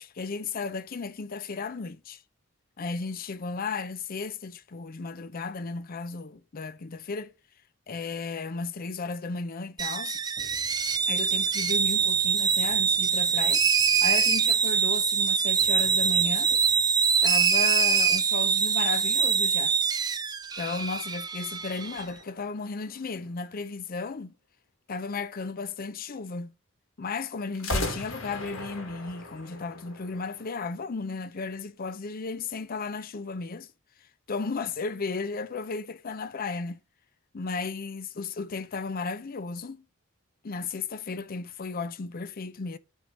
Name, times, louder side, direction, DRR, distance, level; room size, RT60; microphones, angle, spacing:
voice 1, 0.0-2.2 2.8-7.3 7.9-10.2 11.1-13.6 14.0-16.5 17.2-19.8 20.6-24.3 24.9-26.5 27.0-33.7 34.3-36.8 37.3-39.8 40.4-42.8, left 4 dB, 45° left, 0.5 m, -34 dB
sound 1, 9.8-22.0, right 6 dB, 20° right, 0.5 m, -24 dB
sound 2, 10.4-17.1, right 1 dB, ahead, 3.6 m, -54 dB
sound 3, 21.7-23.5 27.5-30.6, left 1 dB, 65° left, 2.1 m, -37 dB
9.1 x 3.6 x 5.3 m
head